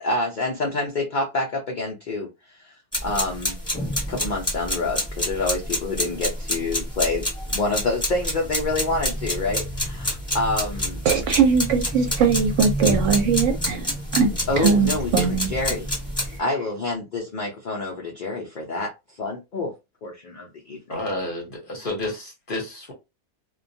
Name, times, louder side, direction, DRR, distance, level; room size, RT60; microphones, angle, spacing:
voice 1, 0.0-3.6 4.1-7.3 7.5-11.0 14.5-15.9 16.4-19.7 20.0-21.0, left 2 dB, 75° left, 0.4 m, -27 dB
sound 1, 2.9-16.4, left 1 dB, 5° left, 0.9 m, -28 dB
voice 2, 11.0-14.3 14.6-15.5, right 6 dB, 65° right, 0.8 m, -21 dB
voice 3, 20.9-22.9, left 2 dB, 45° left, 0.7 m, -30 dB
2.3 x 2.2 x 2.6 m
omnidirectional pair, 1.5 m